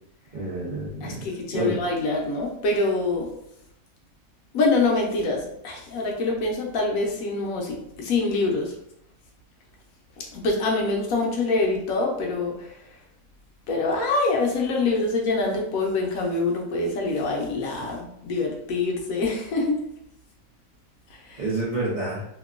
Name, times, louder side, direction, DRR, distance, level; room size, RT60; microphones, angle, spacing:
voice 1, 0.3-1.2 1.5-1.8 21.4-22.2, right 2 dB, 90° right, -6 dB, 0.4 m, -28 dB
voice 2, 1.0-3.3 4.5-8.7 10.3-12.7 13.7-19.8 21.1-21.4, left 3 dB, 70° left, 0 dB, 1.0 m, -25 dB
2.8 x 2.2 x 2.3 m, 0.77 s
omnidirectional pair, 1.6 m